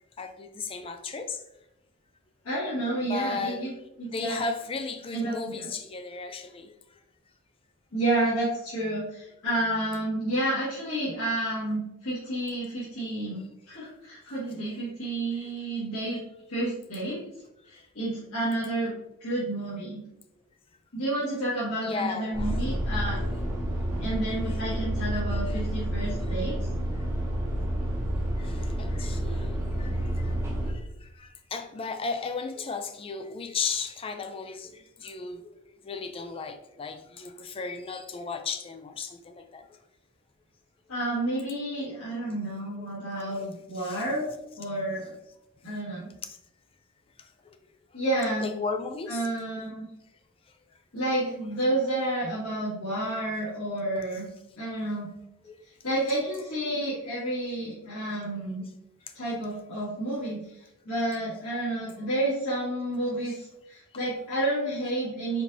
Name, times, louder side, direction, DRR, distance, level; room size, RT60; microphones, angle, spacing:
voice 1, 0.2-1.4 3.0-3.7 4.0-6.7 15.4-15.5 15.9-16.2 16.6-16.7 21.8-22.6 25.3-25.6 28.4-30.3 30.7-35.6 35.8-39.6 43.4-43.5 43.8-44.0 46.2-46.4 48.4-49.3 55.4-55.6, left 4 dB, 25° left, 0.3 m, -35 dB
voice 2, 2.4-3.7 4.0-4.4 5.1-5.7 7.9-16.2 16.5-17.2 17.6-18.9 19.2-20.0 20.9-23.2 24.0-26.6 40.9-44.2 44.6-45.1 45.6-46.1 47.9-48.5 49.1-49.9 50.9-54.2 54.6-55.1 55.8-58.6 59.1-60.6 60.8-65.4, right 1 dB, 85° left, 1.5 m, -30 dB
sound 1, 22.3-30.7, right 1 dB, 15° right, 0.8 m, -29 dB
4.5 x 4.0 x 2.6 m
head